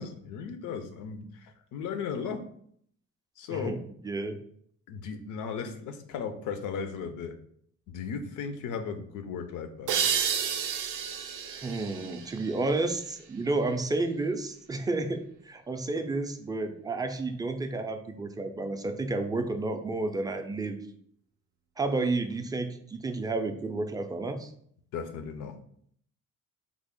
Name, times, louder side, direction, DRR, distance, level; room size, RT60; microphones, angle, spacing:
voice 1, 0.0-2.4 3.4-3.8 4.9-7.4 7.9-10.2 24.9-25.6, left 6 dB, 85° left, 8 dB, 0.5 m, -36 dB
voice 2, 4.0-4.4 11.5-20.8 21.8-24.5, right 2 dB, 15° right, 7 dB, 0.3 m, -31 dB
sound 1, 9.9-13.3, right 7 dB, 80° right, 0.5 m, -31 dB
3.4 x 2.0 x 3.6 m, 0.64 s
cardioid pair, 90°, 30 cm